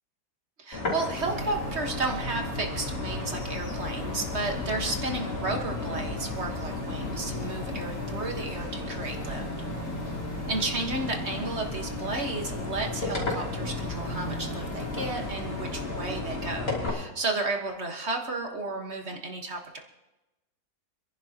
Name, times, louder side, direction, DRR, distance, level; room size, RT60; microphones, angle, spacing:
voice 1, 0.6-9.5 10.5-19.8, right 3 dB, 40° right, 2 dB, 1.7 m, -33 dB
sound 1, 0.7-16.9, left 3 dB, 50° left, 3.4 m, -34 dB
sound 2, 1.2-16.6, right 2 dB, 70° right, 3.1 m, -40 dB
26.5 x 11.0 x 2.9 m, 1.0 s
omnidirectional pair, 1.8 m